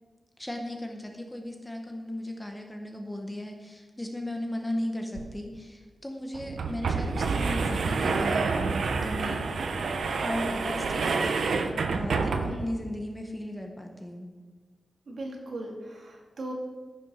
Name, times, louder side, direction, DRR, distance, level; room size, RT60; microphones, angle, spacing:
voice 1, 0.4-8.8 9.0-9.5 10.2-11.5 11.9-14.3, left 1 dB, 10° left, 3 dB, 1.0 m, -36 dB
sound 1, 5.1-5.2 5.5-5.6 6.3-12.8, right 4 dB, 90° right, 0.9 m, -28 dB
voice 2, 15.1-16.5, right 1 dB, 60° right, -1 dB, 2.4 m, -38 dB
14.5 x 6.3 x 5.6 m, 1.4 s
wide cardioid pair, 170°, 0 cm